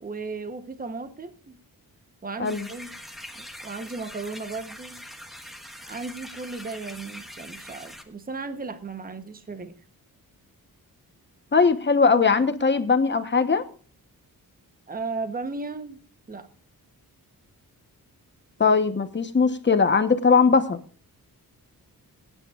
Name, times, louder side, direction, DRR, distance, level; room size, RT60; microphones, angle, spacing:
voice 1, 0.0-1.6 2.2-2.9 3.3-5.0 5.9-9.8 14.9-16.0 16.3-16.5, right 3 dB, 25° right, 9 dB, 1.0 m, -35 dB
sound 1, 2.4-8.0, equal, ahead, 1.4 m, -43 dB
voice 2, 11.5-13.6 18.6-20.8, left 5 dB, 30° left, 9 dB, 1.1 m, -20 dB
25.5 x 9.2 x 2.4 m, 0.41 s
wide cardioid pair, 110°, 35 cm